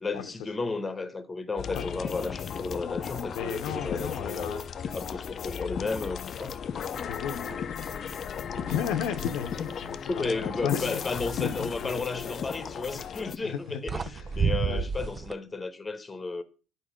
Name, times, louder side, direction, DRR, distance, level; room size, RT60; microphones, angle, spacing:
voice 1, 0.0-6.6 10.1-16.4, left 3 dB, 20° left, 0.9 m, -33 dB
sound 1, 1.6-13.4, left 7 dB, 45° left, 0.5 m, -36 dB
voice 2, 3.3-4.6 5.1-5.2 7.0-11.0 11.4-11.9 13.4-13.8 14.1-14.9, left 8 dB, 80° left, 0.7 m, -34 dB
sound 2, 7.0-7.2 7.5-8.1 8.6-10.4 12.6-12.9 13.6-13.7 13.9-15.3, right 6 dB, 30° right, 0.4 m, -32 dB
8.8 x 4.1 x 5.1 m
supercardioid pair, 95°, 0 cm